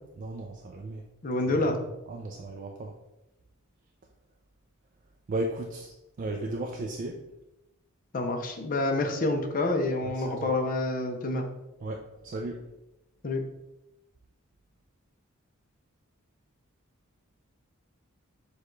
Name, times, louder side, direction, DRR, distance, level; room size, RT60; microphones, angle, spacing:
voice 1, 0.2-1.0 2.1-2.9 5.3-5.9 6.2-7.2 10.2-10.5 11.8-12.6, right 2 dB, 40° right, 2 dB, 0.3 m, -35 dB
voice 2, 1.2-1.8 8.1-11.4 13.2-13.4, left 2 dB, 40° left, 4 dB, 0.5 m, -28 dB
6.7 x 2.3 x 3.1 m, 0.96 s
head